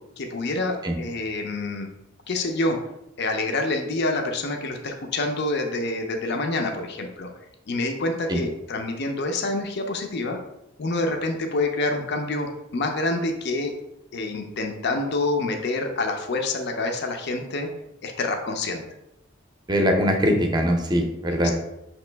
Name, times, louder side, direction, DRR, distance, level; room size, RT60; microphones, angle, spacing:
voice 1, 0.2-1.9 2.3-2.8 3.2-7.3 7.7-10.4 10.8-13.7 14.1-17.7 18.0-18.8 21.4-21.6, left 2 dB, 55° left, 4 dB, 0.5 m, -27 dB
voice 2, 19.7-21.6, equal, 20° right, 4 dB, 0.6 m, -22 dB
5.5 x 3.0 x 3.3 m, 0.89 s
head